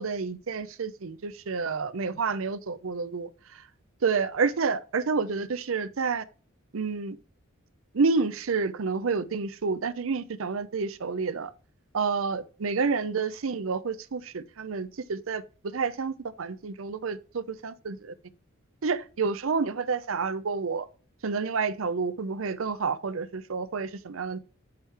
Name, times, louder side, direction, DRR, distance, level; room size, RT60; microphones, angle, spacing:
voice 1, 0.0-3.3 4.0-6.2 6.7-7.2 7.9-11.5 11.9-18.1 18.8-20.9 21.2-24.4, right 4 dB, 75° right, 0.6 m, -29 dB
8.3 x 4.6 x 3.3 m
head